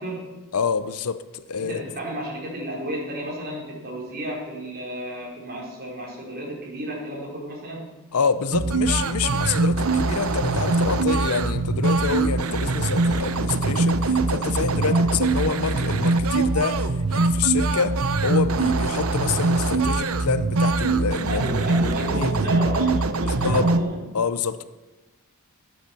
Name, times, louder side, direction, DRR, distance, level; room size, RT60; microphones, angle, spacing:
voice 1, 0.0-0.4 1.6-7.9 14.8-15.0 21.3-24.1, right 1 dB, 45° right, 4.2 m, -32 dB
voice 2, 0.5-1.8 8.1-22.3 23.3-23.7 24.1-24.6, left 5 dB, 75° left, 0.7 m, -27 dB
sound 1, 8.5-23.8, right 3 dB, 65° right, 0.8 m, -23 dB
14.0 x 8.6 x 7.0 m
head